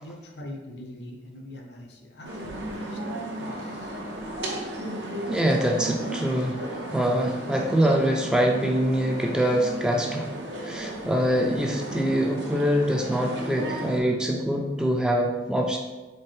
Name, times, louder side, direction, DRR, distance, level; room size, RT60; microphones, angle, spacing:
voice 1, 0.0-3.9, left 1 dB, 70° left, 3 dB, 0.7 m, -43 dB
sound 1, 2.2-14.0, right 1 dB, 80° right, 0.8 m, -35 dB
voice 2, 5.3-10.3 10.6-15.8, equal, 5° right, 0 dB, 0.3 m, -24 dB
4.3 x 3.4 x 3.4 m, 1.2 s
head